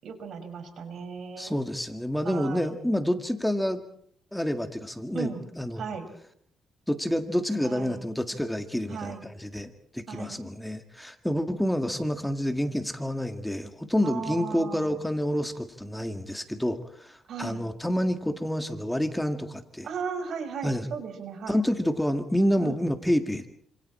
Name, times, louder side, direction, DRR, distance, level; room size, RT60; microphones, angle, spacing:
voice 1, 0.0-1.5 2.2-2.7 5.1-5.4 5.8-6.1 7.6-8.0 8.9-9.2 10.1-10.4 14.0-15.0 17.3-17.6 19.8-21.6 22.6-22.8, right 6 dB, 65° right, 8 dB, 5.7 m, -36 dB
voice 2, 1.4-3.8 4.3-5.8 6.9-19.9 20.6-20.9 21.5-23.5, equal, 5° left, 7 dB, 1.9 m, -28 dB
30.0 x 27.0 x 4.3 m, 0.63 s
cardioid pair, 105°, 0 cm